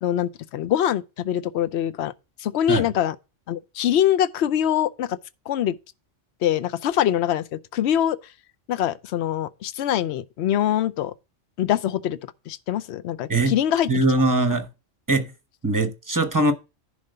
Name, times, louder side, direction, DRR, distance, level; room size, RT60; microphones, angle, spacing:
voice 1, 0.0-2.1 2.4-3.1 3.5-5.2 5.5-5.8 6.4-8.2 8.7-11.1 11.6-12.2 12.5-14.0, left 11 dB, 65° left, 0.9 m, -24 dB
voice 2, 13.9-14.7 15.1-15.3 15.6-16.5, right 2 dB, 15° right, 0.8 m, -21 dB
10.5 x 3.5 x 6.6 m
omnidirectional pair, 1.3 m